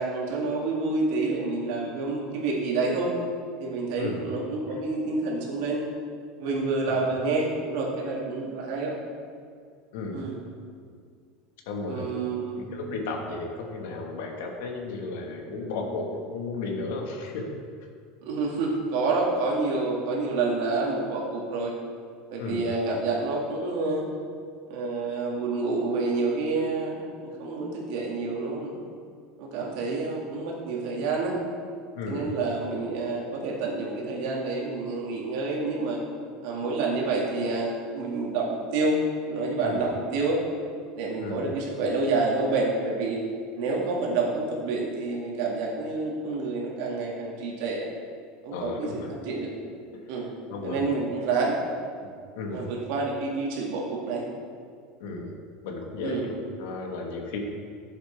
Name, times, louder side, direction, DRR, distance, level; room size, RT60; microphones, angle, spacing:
voice 1, 0.0-3.1 3.6-5.8 6.4-8.9 10.1-10.4 11.9-12.6 18.2-21.7 22.3-24.1 24.7-28.8 29.4-31.3 32.1-36.0 36.4-39.0 39.3-40.4 41.0-43.2 43.6-47.9 48.4-49.5 50.1-50.3 50.6-51.6 52.5-54.2 56.0-56.3, right 3 dB, 60° right, -2 dB, 1.9 m, -28 dB
voice 2, 4.0-4.3 6.9-7.0 9.9-10.2 11.7-12.1 12.6-17.5 22.4-22.7 31.9-32.3 39.6-39.9 41.2-41.5 48.5-49.1 49.9-50.0 50.5-50.9 52.0-52.1 52.3-52.7 55.0-55.3 55.6-57.4, left 3 dB, 75° left, 1 dB, 1.4 m, -34 dB
11.0 x 7.2 x 3.3 m, 2.2 s
supercardioid pair, 175°, 0 cm